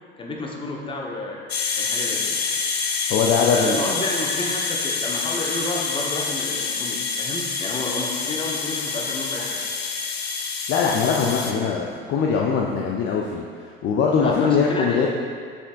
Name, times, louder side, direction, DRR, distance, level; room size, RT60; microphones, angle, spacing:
voice 1, 0.2-2.4 3.5-9.6 14.2-15.1, left 1 dB, 15° left, -1 dB, 1.0 m, -31 dB
sound 1, 1.5-11.5, left 5 dB, 85° left, 0.6 m, -27 dB
voice 2, 3.1-3.8 10.7-15.1, left 5 dB, 35° left, -1 dB, 0.6 m, -21 dB
7.7 x 6.2 x 2.5 m, 2.2 s
figure-of-eight pair, 70°, 30 cm